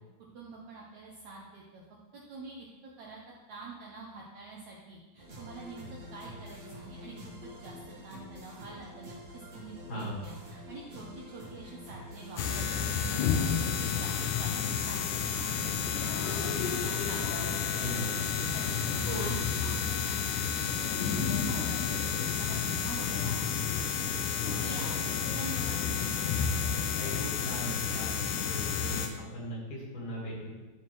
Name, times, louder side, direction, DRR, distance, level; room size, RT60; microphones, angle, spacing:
voice 1, 0.3-1.8 2.1-2.7 3.0-3.2 3.5-5.8 6.1-7.1 7.4-18.1 18.5-18.7 19.1-20.7 21.0-24.1 24.4-25.9, right 3 dB, 75° right, -3 dB, 1.7 m, -46 dB
sound 1, 5.2-19.3, left 1 dB, 50° right, 1.1 m, -47 dB
sound 2, 12.4-29.1, left 7 dB, 80° left, 1.8 m, -31 dB
voice 2, 27.0-30.5, equal, 60° left, -4 dB, 3.0 m, -38 dB
13.0 x 4.4 x 3.1 m, 1.2 s
omnidirectional pair, 4.3 m